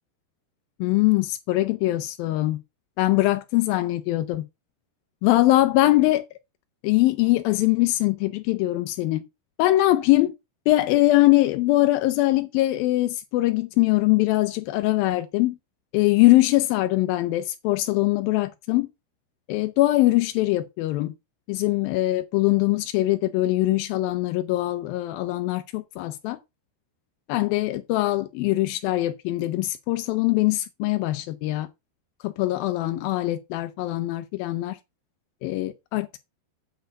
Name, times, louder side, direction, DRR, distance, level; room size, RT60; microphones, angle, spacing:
voice 1, 0.8-2.6 3.0-4.4 5.2-6.2 6.8-9.2 9.6-10.3 10.7-15.6 15.9-18.9 19.5-21.1 21.5-26.4 27.3-31.7 32.2-34.8 35.4-36.2, left 17 dB, 75° left, 2.2 m, -22 dB
9.3 x 4.3 x 6.4 m
omnidirectional pair, 4.9 m